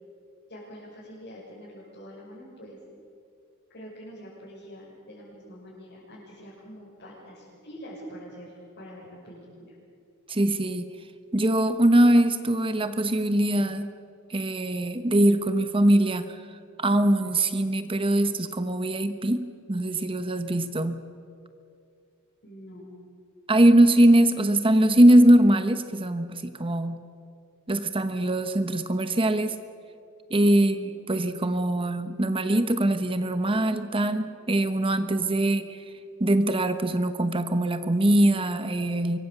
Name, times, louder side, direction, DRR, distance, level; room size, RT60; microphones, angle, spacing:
voice 1, 0.5-2.8 3.7-9.5 22.4-23.0 30.6-30.9, equal, 50° left, -8 dB, 6.8 m, -45 dB
voice 2, 10.3-10.9 11.3-13.9 14.3-16.4 16.8-21.0 23.5-27.0 27.7-29.6 30.3-35.8 36.2-39.2, right 1 dB, 25° right, 10 dB, 1.0 m, -22 dB
25.5 x 23.0 x 6.8 m, 2.5 s
head